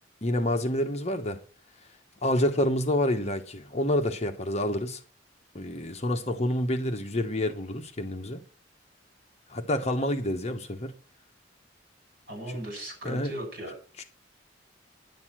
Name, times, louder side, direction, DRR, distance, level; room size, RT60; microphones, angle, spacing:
voice 1, 0.2-1.4 2.2-5.0 5.5-8.4 9.5-10.9 13.0-13.3 14.0-14.1, left 1 dB, 35° left, 1.0 m, -28 dB
voice 2, 12.3-13.7, right 1 dB, 50° right, 6.8 m, -37 dB
10.0 x 9.3 x 6.2 m
head